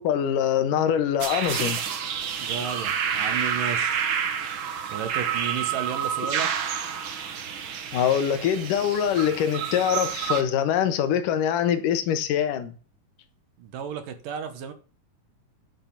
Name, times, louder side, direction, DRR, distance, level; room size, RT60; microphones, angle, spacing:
voice 1, 0.0-1.8 7.9-12.7, left 9 dB, 75° left, 2.8 m, -24 dB
sound 1, 1.2-10.4, right 7 dB, 60° right, 1.4 m, -29 dB
voice 2, 2.4-4.0 4.9-6.5 13.6-14.7, right 8 dB, 75° right, 3.0 m, -33 dB
9.8 x 6.8 x 7.2 m
omnidirectional pair, 3.9 m